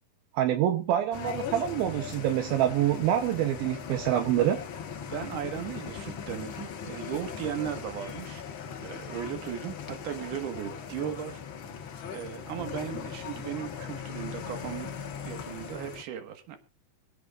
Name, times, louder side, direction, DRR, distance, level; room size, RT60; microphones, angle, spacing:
voice 1, 0.3-4.6, right 11 dB, 80° right, 6 dB, 2.7 m, -26 dB
sound 1, 1.1-16.0, left 7 dB, 85° left, 1.1 m, -39 dB
voice 2, 5.0-8.4 8.8-11.3 12.1-14.9 15.2-16.6, right 9 dB, 65° right, 7 dB, 2.9 m, -36 dB
25.5 x 8.7 x 2.4 m, 0.28 s
omnidirectional pair, 4.3 m